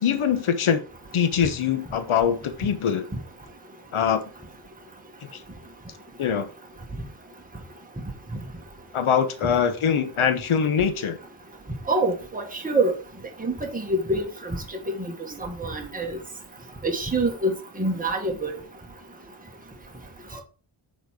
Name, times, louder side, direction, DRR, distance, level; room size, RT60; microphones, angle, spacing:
voice 1, 0.0-0.8 1.1-3.0 3.9-4.2 6.2-6.5 8.9-11.2, left 7 dB, 80° left, 1.1 m, -23 dB
voice 2, 11.9-12.9 13.4-14.6 14.9-15.0 15.4-16.2 16.8-18.5 20.3-20.4, right 2 dB, 15° right, 1.5 m, -26 dB
6.6 x 4.4 x 4.8 m
wide cardioid pair, 120°, 49 cm